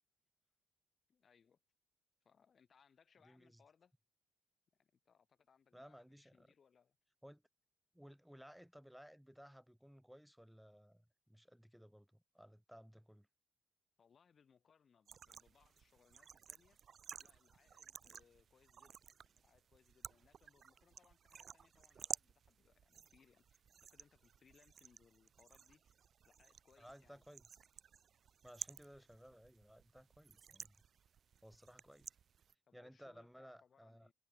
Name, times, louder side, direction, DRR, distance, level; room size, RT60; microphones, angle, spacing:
voice 1, 1.1-1.6 2.2-3.9 4.8-7.0 14.0-16.8 17.2-27.2 32.7-34.1, left 6 dB, 45° left, 6.4 m, -71 dB
voice 2, 3.2-3.6 5.7-6.5 7.2-7.4 7.9-13.3 26.8-27.6 28.4-30.8 31.4-32.1 32.7-34.1, equal, ahead, 7.8 m, -59 dB
sound 1, 15.1-32.5, right 7 dB, 50° right, 1.8 m, -54 dB
figure-of-eight pair, 40°, 0 cm